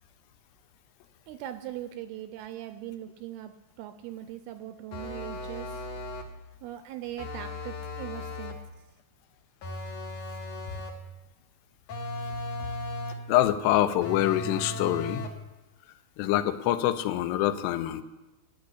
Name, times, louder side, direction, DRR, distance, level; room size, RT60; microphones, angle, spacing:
voice 1, 1.3-5.9 6.6-8.6, right 12 dB, 80° right, 9 dB, 2.3 m, -40 dB
sound 1, 4.9-6.4 7.2-8.7 9.6-11.1 11.9-13.3 14.0-15.5, left 1 dB, 65° left, 1.7 m, -37 dB
voice 2, 13.3-15.2 16.2-18.0, left 13 dB, 85° left, 11 dB, 2.8 m, -25 dB
11.5 x 6.7 x 9.7 m, 1.1 s
omnidirectional pair, 4.9 m